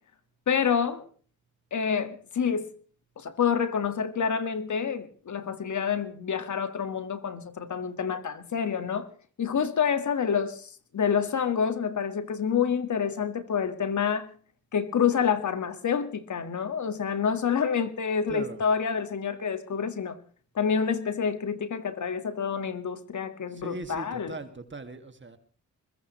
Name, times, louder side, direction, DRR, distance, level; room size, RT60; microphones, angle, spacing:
voice 1, 0.5-1.1 1.7-2.7 3.2-9.1 9.4-14.3 14.7-20.2 20.6-24.3, left 7 dB, 65° left, 1.8 m, -28 dB
voice 2, 18.3-18.6 23.5-25.4, right 3 dB, 35° right, 2.2 m, -39 dB
21.5 x 21.0 x 3.2 m
cardioid pair, 55°, 32 cm